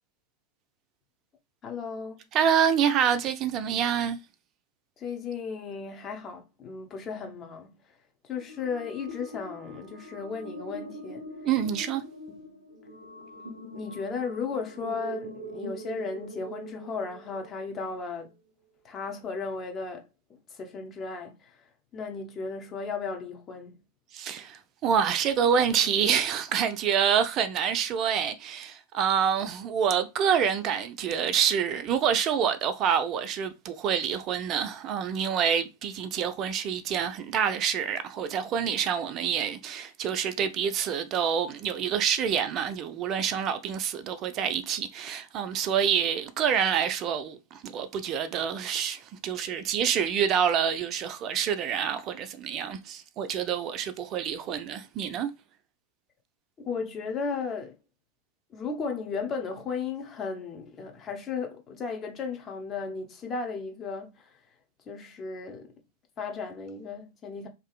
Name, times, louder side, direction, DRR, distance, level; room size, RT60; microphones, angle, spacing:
voice 1, 1.6-2.2 5.0-7.8 8.2-11.3 12.4-12.6 13.7-18.3 18.8-21.7 21.9-23.8 56.6-57.8 58.5-64.4 64.9-65.7 66.2-67.5, left 5 dB, 25° left, 0.6 m, -35 dB
voice 2, 2.3-4.2 11.4-12.0 24.1-55.3, right 8 dB, 35° right, 0.3 m, -27 dB
sound 1, 8.3-17.7, right 1 dB, 90° right, 0.6 m, -42 dB
2.6 x 2.4 x 2.3 m
figure-of-eight pair, 90°, 0 cm